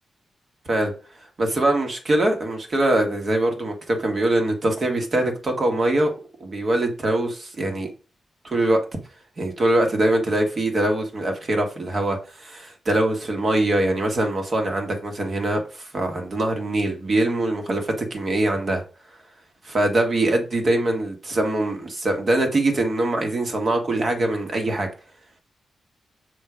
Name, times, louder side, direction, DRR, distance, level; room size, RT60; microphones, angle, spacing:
voice 1, 1.4-6.1 6.4-7.9 8.4-8.8 9.4-18.8 19.6-24.9, right 1 dB, 40° right, 4 dB, 1.6 m, -23 dB
6.5 x 4.0 x 5.0 m, 0.35 s
wide cardioid pair, 155°, 0 cm